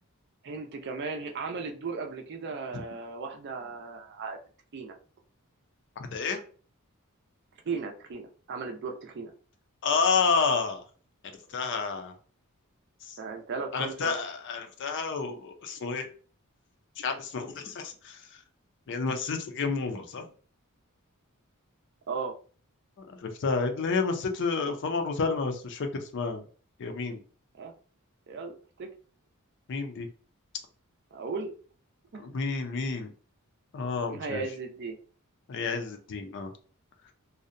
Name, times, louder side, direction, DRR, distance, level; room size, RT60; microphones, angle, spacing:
voice 1, 0.4-4.4 4.7-4.9 7.6-9.3 13.2-14.1 22.1-22.4 27.5-27.7 28.3-28.9 31.1-31.5 32.1-32.2 34.1-35.0, right 4 dB, 50° right, 3 dB, 0.4 m, -36 dB
voice 2, 6.0-6.4 9.8-10.8 11.5-12.1 13.0-13.2 13.7-16.1 17.0-18.2 18.9-20.3 23.0-26.4 26.8-27.2 29.7-30.1 32.2-33.1 33.7-34.4 35.5-36.5, left 4 dB, 55° left, 5 dB, 0.4 m, -30 dB
2.6 x 2.1 x 2.5 m, 0.40 s
head